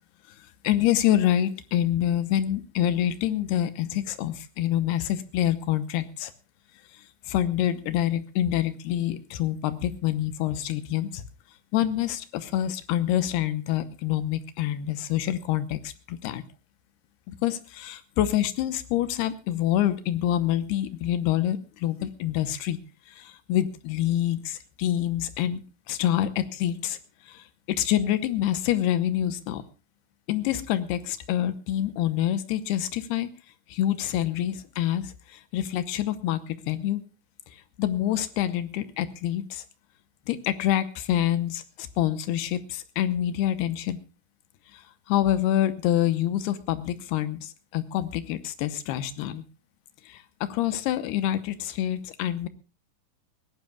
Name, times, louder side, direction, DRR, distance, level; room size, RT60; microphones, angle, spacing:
voice 1, 0.6-6.3 7.3-11.2 11.7-16.4 17.3-22.8 23.1-25.6 25.9-27.0 27.3-29.6 30.3-33.3 33.7-37.0 37.8-39.6 40.3-44.0 44.7-44.8 45.1-49.4 50.1-52.5, left 12 dB, 80° left, 12 dB, 2.4 m, -26 dB
21.5 x 17.0 x 2.3 m, 0.33 s
omnidirectional pair, 5.6 m